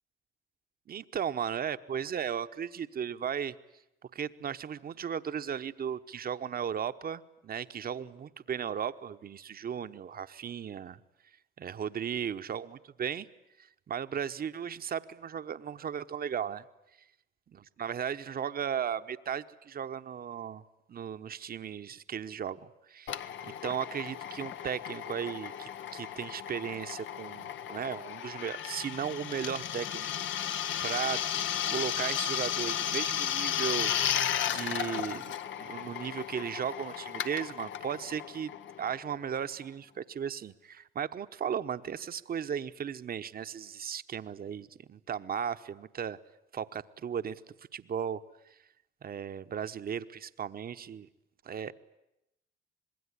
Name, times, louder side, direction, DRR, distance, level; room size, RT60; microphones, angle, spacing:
voice 1, 0.9-3.5 4.1-11.0 11.6-13.3 13.6-16.6 17.5-20.6 20.9-30.1 30.4-30.5 30.8-31.2 31.7-33.9 34.4-38.5 38.8-46.2 46.5-47.4 47.7-48.2 49.0-51.1 51.4-51.7, right 8 dB, 50° right, 11 dB, 1.0 m, -36 dB
Drill, 23.1-39.4, left 10 dB, 70° left, 0.9 m, -34 dB
26.0 x 21.0 x 10.0 m, 0.88 s
cardioid pair, 90°, 20 cm